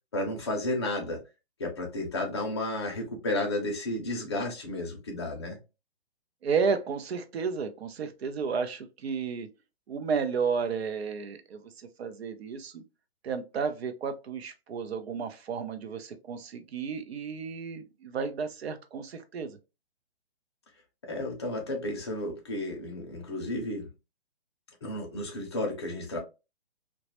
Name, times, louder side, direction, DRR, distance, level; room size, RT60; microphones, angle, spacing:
voice 1, 0.1-1.2 1.6-5.6 21.0-23.9 24.8-26.2, left 1 dB, 25° left, 0.5 m, -32 dB
voice 2, 6.4-9.5 9.9-12.8 13.2-19.6, right 5 dB, 80° right, 0.6 m, -32 dB
2.2 x 2.0 x 2.8 m
hypercardioid pair, 170°, 31 cm